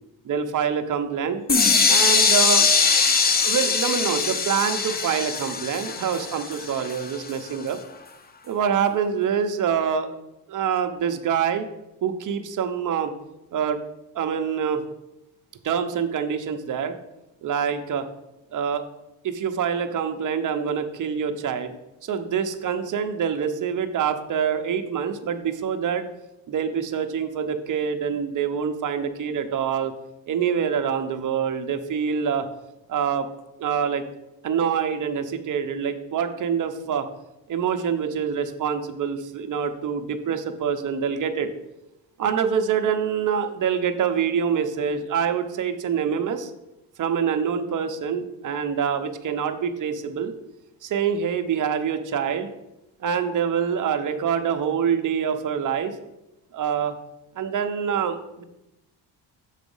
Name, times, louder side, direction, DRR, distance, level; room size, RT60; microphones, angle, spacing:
voice 1, 0.2-1.4 1.9-2.7 3.4-7.8 8.4-10.2 10.5-11.7 12.0-13.1 13.5-13.8 14.1-14.9 15.6-17.0 17.4-18.1 18.5-18.8 19.2-21.7 22.0-26.1 26.5-29.9 30.3-32.5 32.9-33.3 33.6-34.0 34.4-37.1 37.5-41.5 42.2-46.5 47.0-50.3 50.8-52.5 53.0-56.0 56.5-57.0 57.4-58.4, right 7 dB, 45° right, 7 dB, 0.7 m, -25 dB
sound 1, 1.5-7.3, left 5 dB, 25° left, 0.4 m, -21 dB
7.1 x 4.1 x 5.4 m, 0.91 s
cardioid pair, 165°, 42 cm